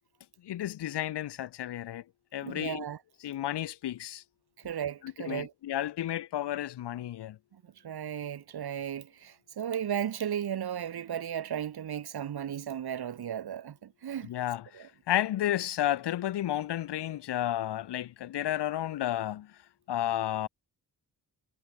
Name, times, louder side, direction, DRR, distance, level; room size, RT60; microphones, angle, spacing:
voice 1, 0.4-2.0 2.3-2.8 3.2-4.2 5.3-7.4 14.2-14.6 15.1-19.5 19.9-20.5, left 12 dB, 85° left, 0.9 m, -32 dB
voice 2, 2.4-3.0 4.6-5.5 7.8-14.3 14.7-14.9, right 9 dB, 65° right, 1.4 m, -35 dB
cardioid pair, 75°, 40 cm